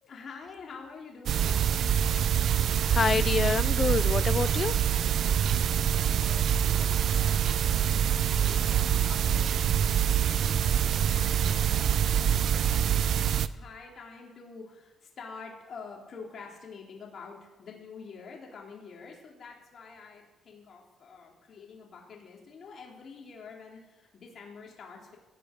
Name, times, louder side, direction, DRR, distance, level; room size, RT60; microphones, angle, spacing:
voice 1, 0.0-1.7 5.1-25.2, left 5 dB, 55° left, -1 dB, 3.3 m, -47 dB
sound 1, 1.3-13.5, right 9 dB, 65° right, 0.5 m, -25 dB
voice 2, 2.9-4.8 8.2-8.4, left 5 dB, 40° left, 18 dB, 0.4 m, -27 dB
17.5 x 10.5 x 5.2 m, 1.1 s
cardioid pair, 90°, 0 cm